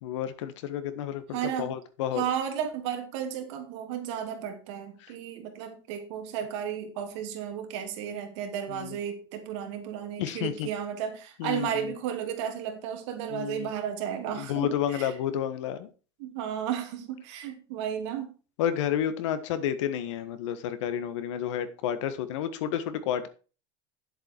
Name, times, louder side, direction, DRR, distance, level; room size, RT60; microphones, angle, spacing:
voice 1, 0.0-2.2 8.7-9.0 10.2-10.7 11.4-11.9 13.3-13.7 14.3-15.9 18.6-23.3, left 10 dB, 85° left, 11 dB, 1.5 m, -31 dB
voice 2, 1.3-1.7 2.1-15.1 16.2-18.3, right 9 dB, 70° right, 5 dB, 2.7 m, -33 dB
10.5 x 7.8 x 4.5 m, 0.35 s
supercardioid pair, 155°, 15 cm